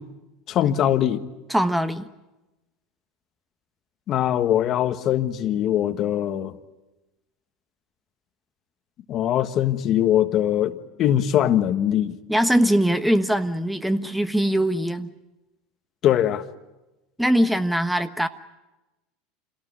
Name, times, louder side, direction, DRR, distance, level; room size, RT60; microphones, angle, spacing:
voice 1, 0.5-1.2 4.1-6.5 9.1-12.1 16.0-16.4, left 11 dB, 50° left, 9 dB, 1.5 m, -22 dB
voice 2, 1.5-2.1 12.3-15.1 17.2-18.3, equal, 5° right, 10 dB, 1.2 m, -22 dB
26.5 x 17.5 x 9.8 m, 1.0 s
hypercardioid pair, 90°, 0 cm